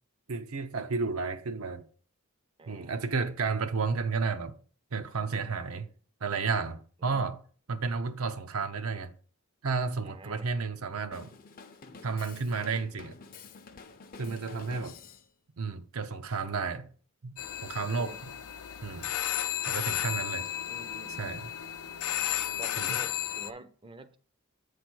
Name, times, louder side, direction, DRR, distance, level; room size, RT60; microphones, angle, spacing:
voice 1, 0.3-1.9 2.7-4.6 4.9-5.9 6.2-7.4 7.7-9.1 9.6-11.3 12.0-13.2 14.2-15.0 15.6-16.9 17.2-18.3 18.8-19.1 19.7-20.5 21.2-21.5 22.8-23.0, right 4 dB, 80° right, 0.7 m, -32 dB
voice 2, 2.6-2.9 7.0-7.2 10.0-10.5 14.2-14.7 17.8-18.2 20.7-21.4 22.6-24.2, right 2 dB, 25° right, 0.5 m, -48 dB
Drum kit, 11.1-15.3, left 4 dB, 40° left, 0.6 m, -49 dB
sound 1, 17.4-23.5, left 11 dB, 90° left, 0.5 m, -33 dB
8.2 x 3.3 x 6.1 m
head